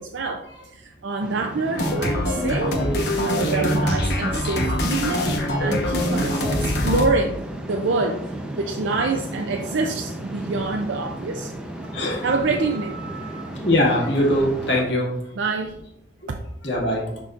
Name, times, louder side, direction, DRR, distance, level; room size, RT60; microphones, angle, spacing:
voice 1, 0.0-7.4 7.6-11.5 11.8-13.6 15.3-15.8 16.3-16.4, right 3 dB, 85° right, 4 dB, 0.5 m, -27 dB
sound 1, 1.2-14.8, right 1 dB, 5° right, 0.6 m, -35 dB
sound 2, 1.7-7.1, left 1 dB, 60° left, 1.1 m, -23 dB
voice 2, 11.9-12.2 13.6-15.1 16.6-17.0, left 1 dB, 80° left, -4 dB, 1.8 m, -21 dB
11.0 x 4.0 x 2.5 m, 0.80 s
head